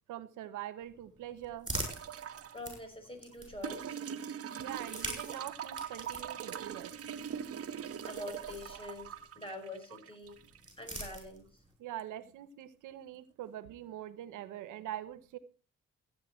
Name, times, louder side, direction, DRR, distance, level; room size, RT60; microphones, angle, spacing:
voice 1, 0.1-1.7 4.6-6.9 8.7-8.8 11.8-15.4, right 12 dB, 90° right, 12 dB, 1.1 m, -43 dB
sound 1, 0.8-3.9 4.7-9.3 10.2-11.7, right 1 dB, 15° right, 6.6 m, -45 dB
sound 2, 1.8-2.6 3.6-10.6 12.0-12.1, right 8 dB, 50° right, 1.1 m, -42 dB
voice 2, 2.5-4.0 8.0-10.4 10.8-11.6, left 1 dB, 20° left, 4 dB, 5.4 m, -45 dB
15.5 x 9.3 x 4.4 m, 0.36 s
cardioid pair, 90°, 30 cm